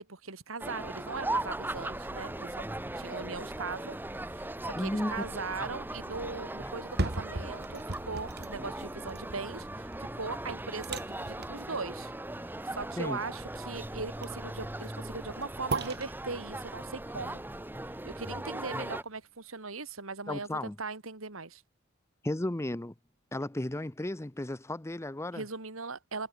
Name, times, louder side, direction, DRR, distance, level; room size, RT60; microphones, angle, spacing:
voice 1, 0.0-2.6 3.0-4.0 4.3-12.1 12.4-17.4 18.0-21.6 25.3-26.3, right 4 dB, 80° right, 2.6 m, -39 dB
sound 1, 0.6-19.0, right 1 dB, 10° right, 1.2 m, -39 dB
voice 2, 4.7-5.2 13.0-13.2 20.3-20.8 22.2-22.9 23.3-25.4, left 1 dB, 15° left, 0.7 m, -34 dB
sound 2, 6.8-18.7 19.2-19.3, right 2 dB, 55° right, 2.4 m, -40 dB
head